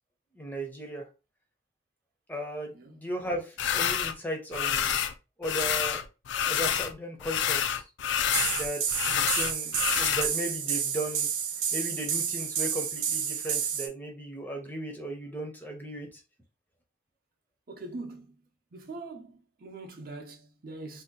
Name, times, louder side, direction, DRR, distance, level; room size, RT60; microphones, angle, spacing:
voice 1, 0.3-1.1 2.3-5.0 5.4-6.1 6.5-7.8 8.5-11.3 11.7-16.2, right 1 dB, 10° left, 0.5 m, -36 dB
voice 2, 2.7-3.1 17.7-18.4 18.7-21.0, right 2 dB, 50° right, 0.6 m, -42 dB
sound 1, 3.6-4.1 4.5-5.1 5.4-6.9 7.2-10.3, left 9 dB, 65° left, 0.3 m, -28 dB
sound 2, 8.3-13.9, right 7 dB, 80° right, 0.8 m, -30 dB
2.7 x 2.2 x 3.6 m
head